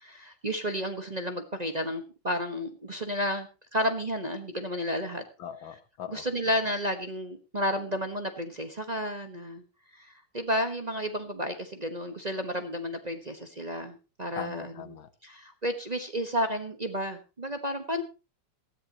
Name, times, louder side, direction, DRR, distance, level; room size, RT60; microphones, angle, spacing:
voice 1, 0.0-5.2 6.1-9.6 9.9-15.0 15.2-18.0, equal, 25° right, 1.1 m, -32 dB
voice 2, 5.4-6.3 14.4-15.1, left 9 dB, 85° left, 1.9 m, -40 dB
18.0 x 13.5 x 2.9 m
omnidirectional pair, 2.2 m